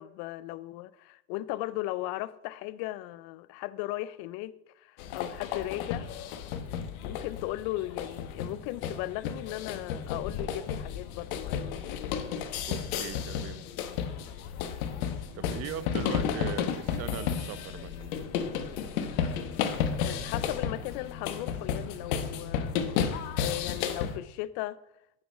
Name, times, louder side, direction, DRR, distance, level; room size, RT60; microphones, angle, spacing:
voice 1, 0.0-6.1 7.0-12.2 19.7-22.8 23.4-24.8, left 16 dB, 55° left, 0.6 m, -37 dB
sound 1, 5.0-24.2, left 8 dB, 70° left, 1.0 m, -33 dB
voice 2, 12.7-13.6 15.3-18.5, right 10 dB, 35° right, 0.6 m, -40 dB
6.3 x 6.0 x 5.0 m
hypercardioid pair, 85°, 44 cm